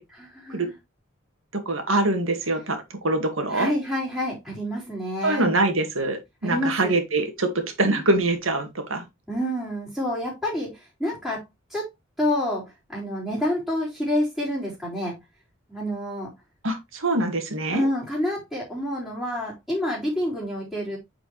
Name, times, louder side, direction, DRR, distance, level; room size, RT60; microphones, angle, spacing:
voice 1, 0.1-0.7 3.5-5.5 6.4-6.9 9.3-11.4 11.7-11.8 12.2-12.6 12.9-15.1 15.7-16.3 17.7-21.0, left 1 dB, ahead, 3.8 m, -28 dB
voice 2, 1.7-3.7 5.2-9.1 16.6-17.9, right 2 dB, 85° right, 2.1 m, -24 dB
9.0 x 4.9 x 3.2 m
head